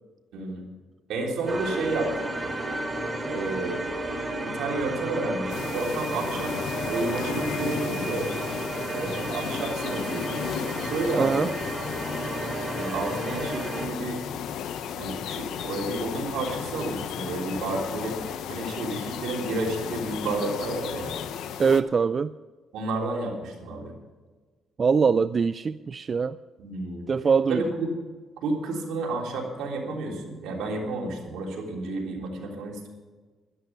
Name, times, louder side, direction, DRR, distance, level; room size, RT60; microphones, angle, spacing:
voice 1, 0.3-0.6 1.1-2.5 3.3-3.8 4.4-6.5 6.9-8.3 8.9-10.4 10.8-11.5 12.7-14.2 15.0-21.1 22.7-23.9 26.6-27.1 27.5-27.9 28.4-32.9, right 2 dB, 80° right, 0 dB, 3.4 m, -31 dB
sound 1, 1.5-13.9, right 2 dB, 20° right, 2.7 m, -32 dB
sound 2, 5.5-21.8, left 8 dB, 80° left, 0.7 m, -34 dB
voice 2, 11.2-11.5 21.6-22.3 24.8-26.4 27.1-27.6, right 5 dB, 40° right, 15 dB, 0.3 m, -22 dB
12.5 x 11.5 x 6.1 m, 1.4 s
cardioid pair, 90°, 0 cm